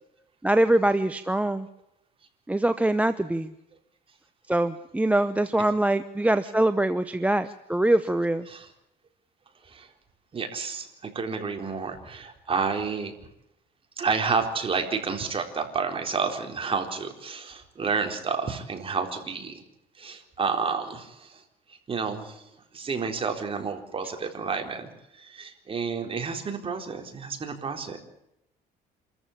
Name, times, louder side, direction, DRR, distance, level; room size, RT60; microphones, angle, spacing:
voice 1, 0.4-1.7 2.5-3.5 4.5-8.5, right 1 dB, 10° right, 11 dB, 0.9 m, -23 dB
voice 2, 10.3-13.1 14.0-19.6 20.0-21.4 21.7-28.0, right 5 dB, 35° right, 5 dB, 4.1 m, -30 dB
27.5 x 14.5 x 8.5 m, 0.84 s
cardioid pair, 110°, 17 cm